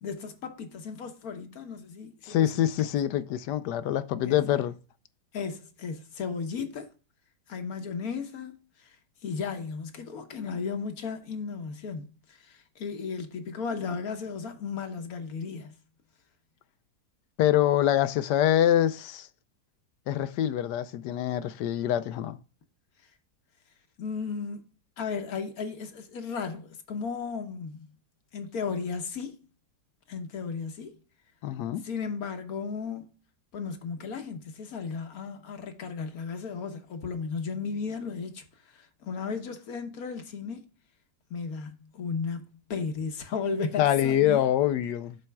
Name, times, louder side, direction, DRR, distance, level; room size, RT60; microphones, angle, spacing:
voice 1, 0.0-2.9 4.2-4.6 5.3-6.9 7.5-9.0 9.2-15.7 24.0-24.6 25.0-27.9 28.3-29.4 30.1-31.0 31.8-33.1 33.5-40.6 41.3-44.4, left 5 dB, 65° left, 1.4 m, -35 dB
voice 2, 2.2-4.7 17.4-19.3 20.1-22.4 31.4-31.8 43.8-45.2, left 11 dB, 80° left, 1.2 m, -25 dB
13.0 x 4.4 x 2.2 m
omnidirectional pair, 1.8 m